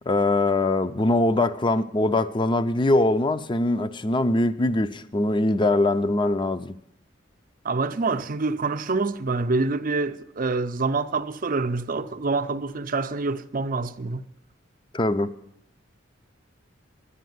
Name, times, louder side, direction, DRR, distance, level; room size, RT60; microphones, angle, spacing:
voice 1, 0.1-6.7 14.9-15.3, left 2 dB, 25° left, 0.5 m, -22 dB
voice 2, 7.6-14.2, right 3 dB, 45° right, 0.6 m, -26 dB
10.0 x 10.0 x 9.4 m
head